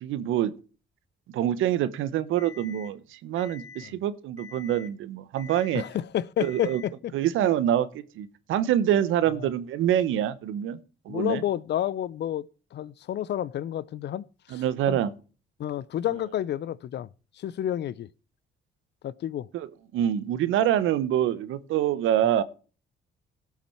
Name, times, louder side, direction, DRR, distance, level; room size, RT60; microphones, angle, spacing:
voice 1, 0.0-0.5 1.3-5.8 6.4-6.8 7.1-10.8 11.1-11.4 14.5-15.1 19.5-19.7 19.9-22.4, right 11 dB, 85° right, 0.8 m, -25 dB
Alarm, 2.4-2.9 3.4-3.9 4.4-4.9 5.4-5.9 6.4-6.9, left 5 dB, 35° right, 2.9 m, -46 dB
voice 2, 5.7-7.1 9.3-9.5 11.1-15.0 15.6-17.1 17.4-18.1 19.0-19.5 22.2-22.4, left 11 dB, 60° left, 0.5 m, -30 dB
16.5 x 5.8 x 4.4 m
cardioid pair, 90°, 20 cm